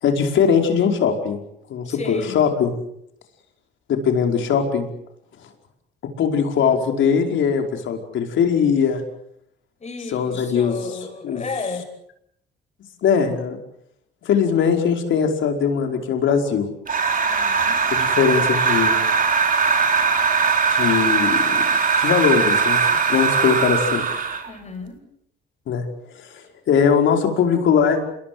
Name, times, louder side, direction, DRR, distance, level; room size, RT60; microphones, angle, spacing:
voice 1, 0.0-1.4 1.7-2.7 3.9-4.9 6.2-9.0 10.1-10.7 11.2-11.4 13.0-13.6 14.2-16.7 17.9-19.0 20.7-21.6 22.0-22.8 23.1-24.1 25.7-25.8 26.1-28.0, left 7 dB, 75° left, 4 dB, 5.2 m, -20 dB
voice 2, 1.8-2.4 9.8-11.8 17.2-17.8 24.4-25.0, left 4 dB, 35° left, 7 dB, 6.9 m, -33 dB
sound 1, 16.9-24.5, right 5 dB, 45° right, 4.4 m, -20 dB
28.0 x 21.5 x 7.9 m, 0.74 s
cardioid pair, 90°, 20 cm